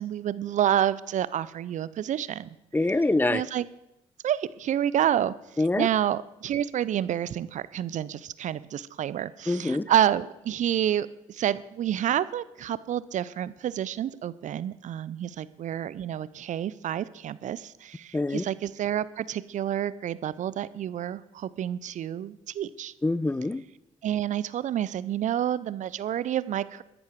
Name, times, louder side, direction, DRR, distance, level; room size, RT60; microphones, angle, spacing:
voice 1, 0.0-2.5 3.3-3.7 4.2-5.3 5.8-22.9 24.0-26.8, right 10 dB, 50° right, 18 dB, 0.6 m, -29 dB
voice 2, 2.7-3.4 5.6-5.9 9.5-9.8 18.1-18.4 23.0-23.6, left 2 dB, 10° left, 18 dB, 0.7 m, -25 dB
14.0 x 10.5 x 4.7 m, 0.89 s
hypercardioid pair, 45°, 16 cm